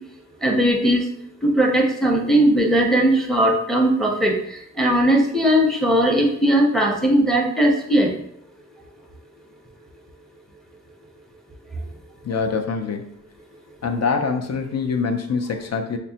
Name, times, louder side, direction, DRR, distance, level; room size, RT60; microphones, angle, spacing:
voice 1, 0.4-1.0 1.4-4.3 4.8-8.1, right 1 dB, ahead, 1 dB, 0.6 m, -18 dB
voice 2, 12.2-13.1 13.8-16.0, left 5 dB, 55° left, 4 dB, 0.5 m, -24 dB
5.9 x 2.1 x 2.7 m, 0.72 s
wide cardioid pair, 110°, 32 cm